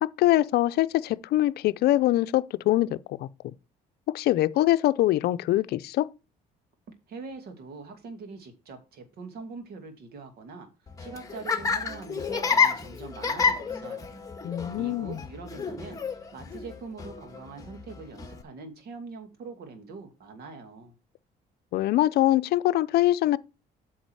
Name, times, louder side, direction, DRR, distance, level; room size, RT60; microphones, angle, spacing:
voice 1, 0.0-3.3 4.1-6.1 14.4-15.2 21.7-23.4, left 15 dB, 70° left, 0.6 m, -23 dB
voice 2, 7.1-10.7 11.0-20.9, right 4 dB, 70° right, 2.5 m, -43 dB
Laughter, 10.9-18.4, left 5 dB, 20° left, 1.6 m, -29 dB
8.8 x 5.9 x 4.7 m
cardioid pair, 110°, 17 cm